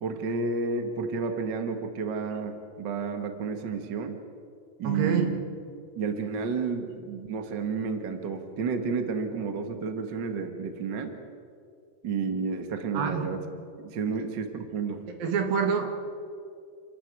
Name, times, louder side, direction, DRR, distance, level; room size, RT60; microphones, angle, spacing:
voice 1, 0.0-4.2 4.8-5.4 5.9-11.1 12.0-13.4 13.8-15.0, right 5 dB, 50° right, 6 dB, 1.4 m, -31 dB
voice 2, 4.8-5.3 12.9-13.3 15.2-15.9, right 6 dB, 85° right, 4 dB, 3.9 m, -26 dB
29.0 x 13.0 x 9.4 m, 2.4 s
omnidirectional pair, 4.0 m